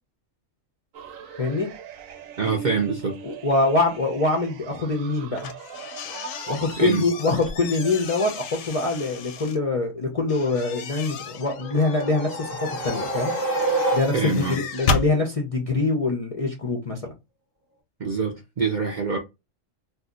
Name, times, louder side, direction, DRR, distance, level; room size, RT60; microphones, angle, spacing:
Dmaj-whale pad, 0.9-8.0, right 7 dB, 80° right, 1.0 m, -41 dB
voice 1, 1.4-1.7 3.2-5.5 6.5-13.3 13.9-14.2 14.5-17.1, left 3 dB, 40° left, 0.5 m, -24 dB
voice 2, 2.4-3.2 6.8-7.0 14.1-14.6 18.0-19.2, right 5 dB, 50° right, 0.5 m, -25 dB
sound 1, 5.3-9.6 10.3-15.1, left 4 dB, 80° left, 1.0 m, -33 dB
sound 2, 11.3-14.6, right 2 dB, 20° right, 0.8 m, -28 dB
2.7 x 2.2 x 3.7 m
omnidirectional pair, 1.4 m